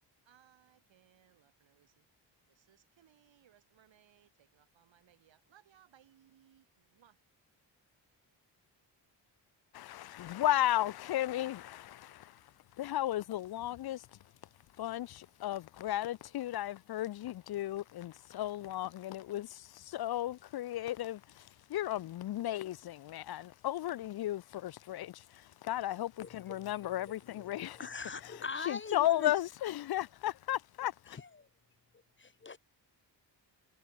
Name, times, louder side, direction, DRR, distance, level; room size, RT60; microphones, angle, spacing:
voice 1, 0.2-2.1 2.5-7.2, right 10 dB, 90° right, 7.0 m, -66 dB
voice 2, 9.7-14.2 14.8-27.9 28.1-31.2, left 13 dB, 60° left, 0.5 m, -35 dB
voice 3, 27.8-29.3 31.2-31.5 32.2-32.6, left 4 dB, 25° left, 0.7 m, -41 dB
cardioid pair, 100°, 44 cm